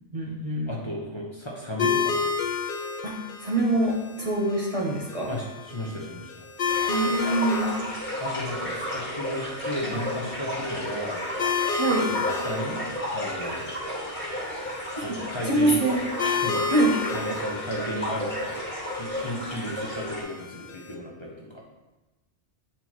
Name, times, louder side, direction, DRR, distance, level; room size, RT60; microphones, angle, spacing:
voice 1, 0.1-0.7 3.4-5.4 6.9-7.7 11.8-12.0 15.1-15.2 15.4-16.0 16.7-16.9, right 2 dB, 35° right, -4 dB, 0.8 m, -24 dB
voice 2, 0.7-2.4 5.3-6.5 8.2-11.2 12.1-12.8 13.1-13.7 14.9-15.8 16.4-16.6 17.1-18.6 18.9-21.6, equal, 25° left, -4 dB, 0.8 m, -34 dB
sound 1, 1.8-20.9, left 5 dB, 55° left, 0.8 m, -33 dB
sound 2, 6.6-20.2, left 1 dB, 10° left, 1.6 m, -33 dB
8.8 x 4.3 x 3.0 m, 1.1 s
omnidirectional pair, 1.2 m